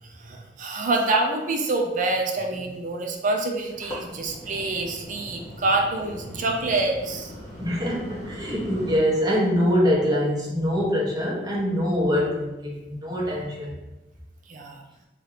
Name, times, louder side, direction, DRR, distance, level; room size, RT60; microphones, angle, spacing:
voice 1, 0.0-7.3 14.5-14.8, right 2 dB, 45° right, 2 dB, 0.4 m, -26 dB
sound 1, 3.6-9.0, equal, 20° left, 1.1 m, -40 dB
voice 2, 7.6-13.7, equal, 20° right, -6 dB, 1.1 m, -24 dB
4.6 x 2.4 x 3.2 m, 1.0 s
head